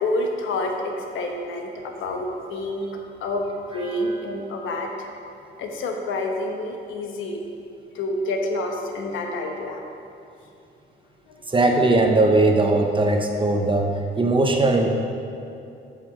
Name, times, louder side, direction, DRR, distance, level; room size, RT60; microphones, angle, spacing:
voice 1, 0.0-2.9 3.2-5.1 5.6-7.4 7.9-9.8, left 2 dB, 80° left, 2 dB, 1.3 m, -28 dB
voice 2, 11.5-13.9 14.2-15.0, right 2 dB, 25° right, 3 dB, 1.1 m, -19 dB
13.0 x 5.7 x 5.0 m, 2.6 s
cardioid pair, 90°, 20 cm